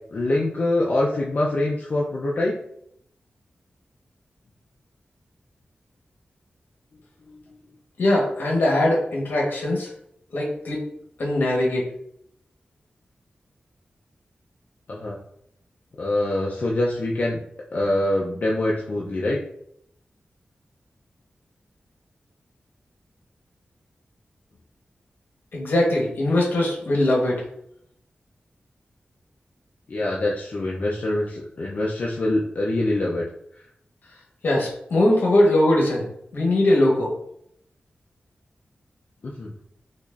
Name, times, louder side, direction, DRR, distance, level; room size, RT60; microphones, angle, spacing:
voice 1, 0.1-2.5 7.3-7.4 14.9-15.2 16.0-17.4 17.7-19.4 29.9-33.3 39.2-39.5, left 1 dB, 55° left, -3 dB, 0.5 m, -24 dB
voice 2, 8.0-9.9 10.3-10.8 11.2-11.9 25.5-27.4 34.4-36.1 36.3-37.1, left 1 dB, 80° left, -2 dB, 1.1 m, -21 dB
4.0 x 2.9 x 2.4 m, 0.72 s
wide cardioid pair, 100°, 3 cm